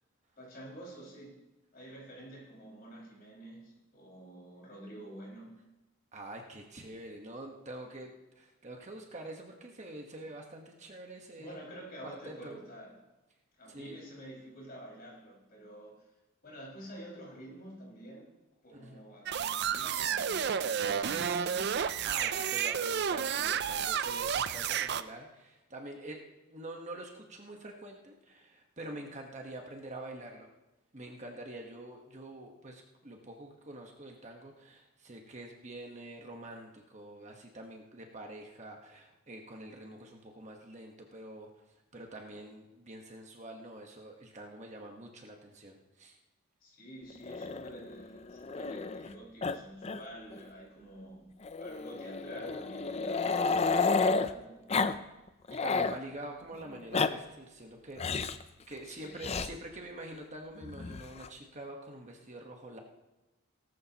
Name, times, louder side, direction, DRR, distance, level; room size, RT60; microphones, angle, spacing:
voice 1, 0.4-1.4 1.7-5.6 10.2-10.3 11.4-12.9 13.6-16.0 16.4-18.3 18.6-21.8 22.3-22.6 46.6-54.6 58.8-59.2, right 1 dB, 45° left, -3 dB, 5.4 m, -49 dB
voice 2, 6.1-11.6 12.0-12.6 13.7-14.0 18.7-19.0 22.0-30.5 30.9-41.5 41.9-46.2 55.5-62.8, right 1 dB, 35° right, 2 dB, 1.3 m, -46 dB
sound 1, 19.3-25.0, right 8 dB, 50° right, 0.4 m, -31 dB
Growling, 47.2-49.1 49.4-49.6 49.8-50.0 50.3-50.4 51.4-54.3 54.7-55.0 55.3-56.0 56.7-57.1 58.0-58.4 59.2-59.5 60.6-61.3, left 4 dB, 30° left, 0.4 m, -31 dB
18.0 x 13.0 x 2.9 m, 1.0 s
head